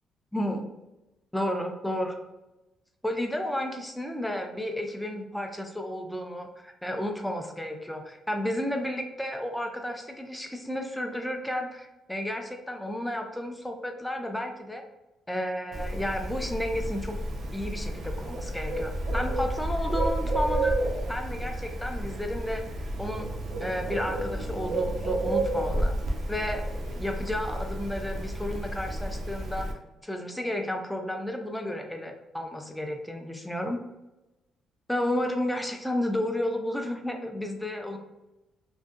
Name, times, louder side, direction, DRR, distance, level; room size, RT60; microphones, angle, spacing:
voice 1, 0.3-0.6 1.3-2.1 3.0-14.8 15.3-17.2 17.5-20.8 21.1-22.6 23.0-23.3 23.6-25.9 26.3-29.7 30.0-33.8 34.9-38.0, left 1 dB, 5° left, 4 dB, 0.4 m, -32 dB
Bird, 15.7-29.7, right 1 dB, 65° right, 0.4 m, -31 dB
2.6 x 2.1 x 2.3 m, 0.98 s
cardioid pair, 90°, 0 cm